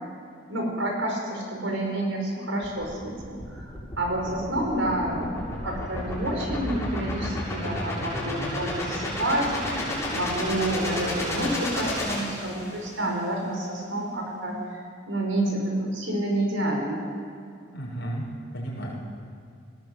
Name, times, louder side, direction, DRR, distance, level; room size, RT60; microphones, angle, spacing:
voice 1, 0.5-3.6 4.0-14.6 15.1-17.0, right 1 dB, 75° right, 0 dB, 5.2 m, -29 dB
sound 1, 2.6-12.9, left 1 dB, 10° left, 7.5 m, -32 dB
voice 2, 17.7-19.0, right 1 dB, 55° left, -3 dB, 6.1 m, -34 dB
19.0 x 18.5 x 7.8 m, 2.5 s
head